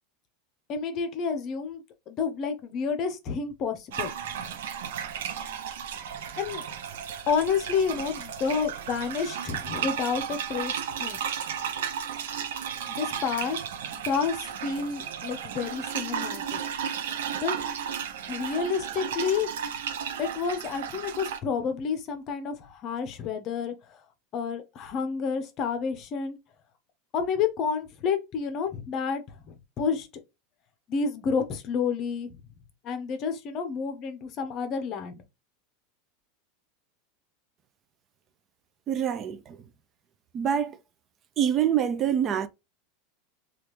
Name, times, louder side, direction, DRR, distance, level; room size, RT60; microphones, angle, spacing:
voice 1, 0.7-4.1 6.4-6.6 7.3-11.2 12.9-13.6 13.9-16.6 17.4-17.5 18.3-19.5 20.2-24.0 24.3-26.4 27.1-30.1 30.9-32.4 32.8-35.2, left 6 dB, 35° left, 0.8 m, -30 dB
sound 1, 3.9-21.4, right 8 dB, 90° right, 0.6 m, -34 dB
voice 2, 38.9-39.6 40.3-40.8 41.4-42.5, right 9 dB, 30° right, 0.4 m, -25 dB
3.2 x 2.4 x 3.0 m
supercardioid pair, 155°, 0 cm